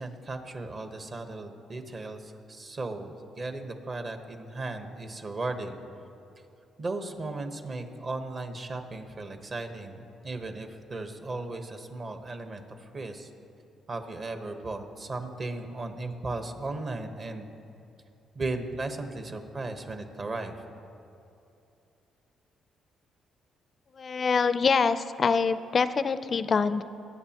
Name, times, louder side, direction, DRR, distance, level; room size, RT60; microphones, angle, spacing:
voice 1, 0.0-5.8 6.8-13.3 13.9-17.6 18.3-20.6, right 2 dB, 40° right, 6 dB, 1.1 m, -36 dB
voice 2, 24.0-26.8, left 5 dB, 45° left, 13 dB, 0.4 m, -25 dB
21.0 x 8.5 x 2.9 m, 2.6 s
cardioid pair, 90°, 0 cm